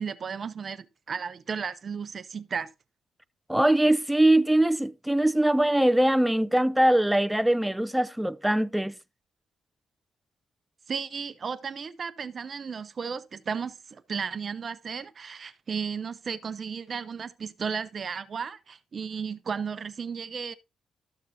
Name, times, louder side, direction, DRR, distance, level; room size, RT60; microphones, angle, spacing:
voice 1, 0.0-2.7 10.9-20.6, right 6 dB, 45° right, 0.7 m, -34 dB
voice 2, 3.5-8.9, right 1 dB, 5° right, 0.5 m, -22 dB
13.5 x 6.5 x 2.7 m
cardioid pair, 90°, 0 cm